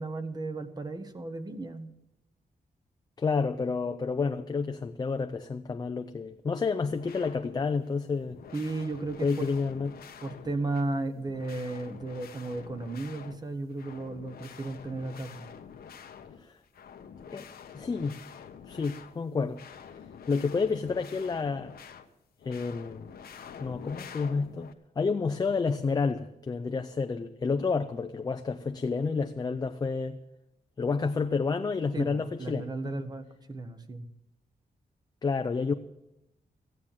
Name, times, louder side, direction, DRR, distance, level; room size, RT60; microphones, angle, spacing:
voice 1, 0.0-1.9 8.5-9.5 10.2-15.4 31.9-34.1, right 2 dB, 25° right, 1.0 m, -34 dB
voice 2, 3.2-8.4 9.2-10.0 16.4-16.6 17.3-17.5 17.7-18.2 18.7-19.6 20.3-21.7 22.4-23.1 23.6-30.2 30.8-32.7 35.2-35.7, left 4 dB, 25° left, 0.5 m, -30 dB
sound 1, 6.7-7.8 8.1-10.8 11.1-13.4 13.7-19.2 19.5-22.1 22.4-24.7, left 7 dB, 85° left, 1.0 m, -47 dB
14.5 x 9.7 x 7.2 m
wide cardioid pair, 180°, 16 cm